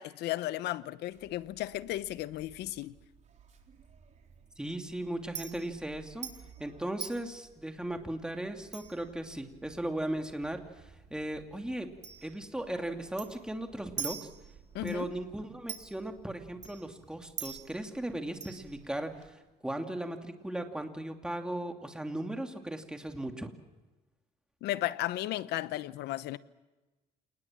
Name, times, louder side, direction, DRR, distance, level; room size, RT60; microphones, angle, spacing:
voice 1, 0.0-2.9 14.7-15.1 24.6-26.4, left 15 dB, 85° left, 1.0 m, -34 dB
Chink clink, 1.1-19.3, right 7 dB, 45° right, 3.9 m, -47 dB
voice 2, 4.6-6.3 6.6-11.9 12.2-14.3 14.8-23.5, right 1 dB, 5° right, 2.7 m, -37 dB
28.5 x 19.5 x 7.5 m
cardioid pair, 110°, 17 cm